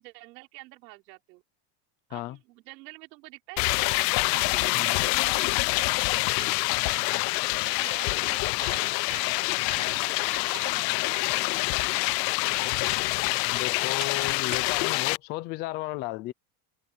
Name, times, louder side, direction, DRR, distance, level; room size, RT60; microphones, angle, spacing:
voice 1, 0.0-1.4 2.1-4.0 4.3-7.0 7.5-11.7, right 23 dB, 85° right, 4.0 m, -47 dB
sound 1, 3.6-15.2, left 26 dB, 80° left, 0.6 m, -26 dB
sound 2, 9.5-15.3, right 27 dB, 60° right, 4.7 m, -51 dB
voice 2, 13.5-16.3, left 18 dB, 25° left, 0.3 m, -34 dB
cardioid pair, 170°, 49 cm